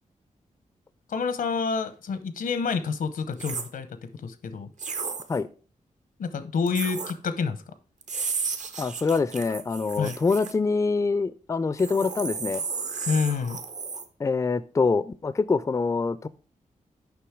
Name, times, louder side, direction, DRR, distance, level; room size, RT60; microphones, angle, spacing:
voice 1, 1.1-4.7 6.2-7.7 10.0-10.2 13.1-13.6, left 5 dB, 85° left, 0.8 m, -28 dB
sound 1, 3.3-3.7 4.8-5.4 6.7-7.1 8.0-10.5 11.8-14.0, right 5 dB, 60° right, 0.8 m, -33 dB
voice 2, 8.8-12.6 14.2-16.3, left 4 dB, 20° left, 0.3 m, -25 dB
7.0 x 5.4 x 4.6 m
wide cardioid pair, 85°, 14 cm